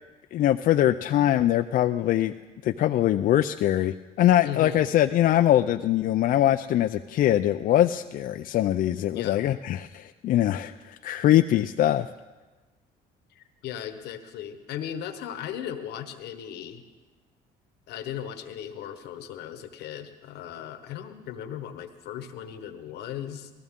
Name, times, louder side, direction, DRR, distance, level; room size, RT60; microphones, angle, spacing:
voice 1, 0.3-2.3 2.6-12.1, left 12 dB, 55° left, 7 dB, 0.4 m, -22 dB
voice 2, 4.4-4.8 9.1-9.4 13.3-16.8 17.9-23.5, left 10 dB, 80° left, 9 dB, 1.1 m, -37 dB
19.0 x 14.5 x 3.7 m, 1.2 s
cardioid pair, 110°, 17 cm